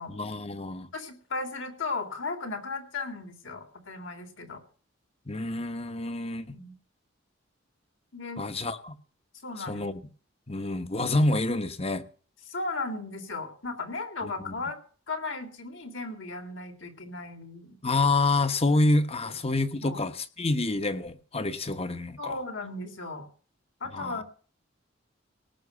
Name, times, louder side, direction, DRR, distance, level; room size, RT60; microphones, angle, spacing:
voice 1, 0.1-0.9 5.3-6.6 8.4-9.0 9.7-10.0 10.5-12.0 14.5-14.6 17.8-22.4 23.9-24.2, left 2 dB, 30° left, 1.2 m, -27 dB
voice 2, 0.9-4.6 6.5-6.7 8.1-8.5 9.4-9.8 12.5-14.8 15.1-17.8 19.2-19.3 19.8-20.0 22.2-23.3 23.8-24.2, left 3 dB, 70° left, 3.3 m, -36 dB
18.5 x 6.8 x 7.0 m
head